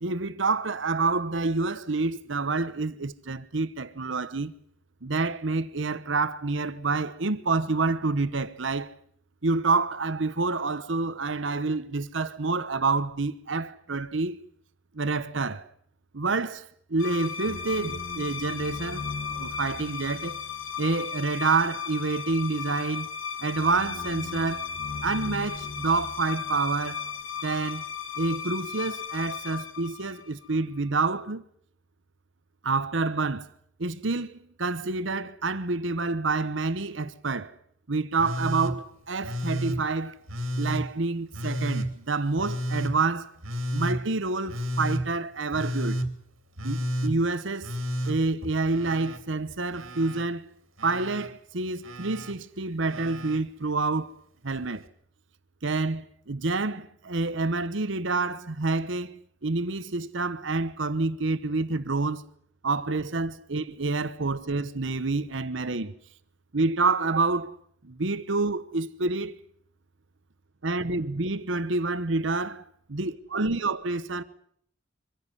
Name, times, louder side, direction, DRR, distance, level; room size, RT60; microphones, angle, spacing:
voice 1, 0.0-4.5 5.0-8.9 9.4-14.3 14.9-15.7 16.1-16.6 16.9-19.0 19.3-20.4 20.8-23.1 23.4-24.7 25.0-27.0 27.4-27.8 28.2-31.4 32.6-33.5 33.8-37.6 37.9-40.2 40.6-43.3 43.7-46.0 46.6-47.7 48.1-50.4 50.8-54.1 54.4-54.8 55.6-62.2 62.6-65.9 66.5-67.6 67.8-69.3 70.6-72.6 72.9-74.2, right 3 dB, 70° right, 1.0 m, -28 dB
sound 1, 17.0-30.6, left 6 dB, 90° left, 1.9 m, -35 dB
Telephone, 38.2-38.7 39.2-39.8 40.3-40.8 41.3-41.9 42.4-42.9 43.4-44.0 44.5-45.0 45.5-46.1 46.6-47.1 47.6-49.2 49.5-50.2 50.8-51.3 51.8-52.3 52.9-53.4 54.6-54.7, equal, 90° right, 2.8 m, -31 dB
24.0 x 16.0 x 9.8 m
head